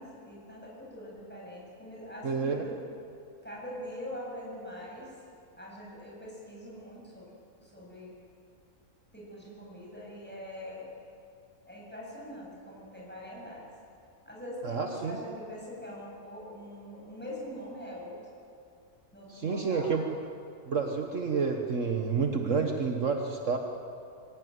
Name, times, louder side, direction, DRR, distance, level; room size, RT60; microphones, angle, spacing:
voice 1, 0.0-2.7 3.4-5.1 5.5-7.3 7.6-8.1 9.1-10.9 11.7-13.7 14.2-18.2 19.1-19.9, left 1 dB, 5° left, -5 dB, 8.0 m, -43 dB
voice 2, 2.2-2.6 14.6-15.2 19.3-20.0 20.7-23.6, right 5 dB, 55° right, 4 dB, 1.6 m, -29 dB
25.0 x 17.0 x 9.5 m, 2.5 s
omnidirectional pair, 1.6 m